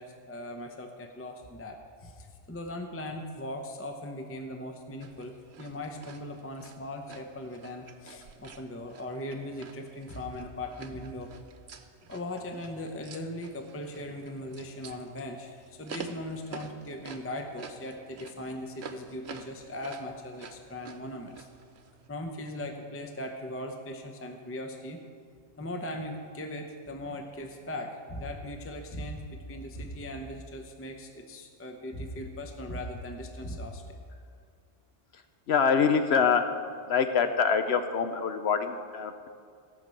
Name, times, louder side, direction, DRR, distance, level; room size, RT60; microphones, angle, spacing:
voice 1, 0.0-11.3 12.1-21.5 22.1-25.0 25.6-33.9, left 1 dB, 15° left, 4 dB, 0.7 m, -39 dB
sound 1, 5.0-22.1, right 5 dB, 70° right, 1.1 m, -49 dB
voice 2, 35.5-36.6 36.9-39.3, left 6 dB, 70° left, 8 dB, 0.9 m, -25 dB
16.0 x 5.9 x 7.6 m, 2.3 s
omnidirectional pair, 1.1 m